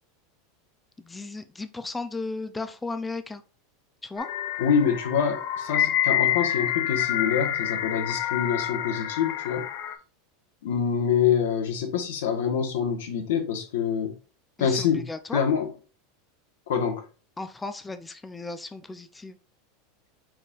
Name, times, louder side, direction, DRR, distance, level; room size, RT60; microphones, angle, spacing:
voice 1, 1.0-3.4 4.0-4.3 14.6-15.4 17.4-19.4, left 3 dB, 10° left, 10 dB, 0.4 m, -35 dB
sound 1, 4.2-9.9, left 12 dB, 55° left, 0.6 m, -28 dB
voice 2, 4.6-9.7 10.6-14.2 14.6-15.7 16.7-17.0, left 7 dB, 85° left, 4 dB, 1.2 m, -26 dB
4.8 x 4.3 x 2.4 m, 0.36 s
supercardioid pair, 160°, 0 cm